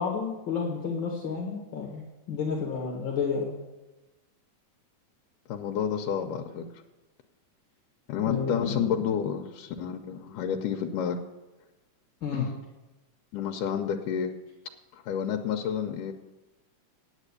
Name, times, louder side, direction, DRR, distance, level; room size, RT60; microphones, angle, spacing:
voice 1, 0.0-3.5 8.3-8.9 9.1-9.2 12.2-12.5, left 5 dB, 45° left, -1 dB, 1.8 m, -31 dB
voice 2, 5.5-6.7 8.1-11.2 12.3-12.6 13.3-14.3 14.9-16.1, left 8 dB, 90° left, 3 dB, 2.3 m, -30 dB
9.0 x 8.8 x 8.3 m, 1.1 s
omnidirectional pair, 3.7 m